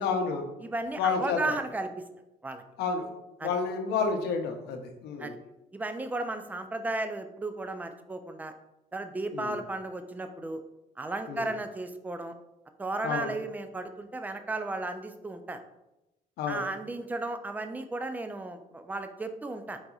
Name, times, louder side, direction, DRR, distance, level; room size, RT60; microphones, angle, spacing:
voice 1, 0.0-0.5 1.0-1.6 2.8-3.1 3.4-5.4 9.3-9.6 11.3-11.5 13.0-13.3 16.4-16.7, left 5 dB, 75° left, 4 dB, 0.7 m, -30 dB
voice 2, 0.6-2.0 2.4-2.6 3.4-3.5 5.2-5.4 5.7-8.5 8.9-10.6 11.0-12.3 12.8-15.6 16.5-19.8, right 2 dB, 10° right, 8 dB, 0.4 m, -34 dB
4.7 x 3.9 x 2.4 m, 0.94 s
cardioid pair, 110°, 17 cm